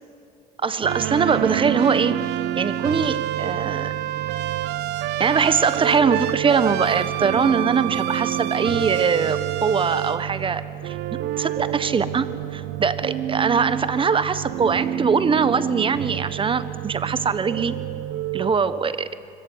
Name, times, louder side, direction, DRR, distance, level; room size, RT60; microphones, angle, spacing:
voice 1, 0.6-2.2 2.6-3.9 5.2-11.0 11.4-17.7 18.3-19.1, right 5 dB, 30° right, 14 dB, 1.4 m, -22 dB
sound 1, 0.8-18.5, right 12 dB, 85° right, 1.0 m, -27 dB
25.0 x 23.5 x 9.8 m, 2.8 s
cardioid pair, 110°, 17 cm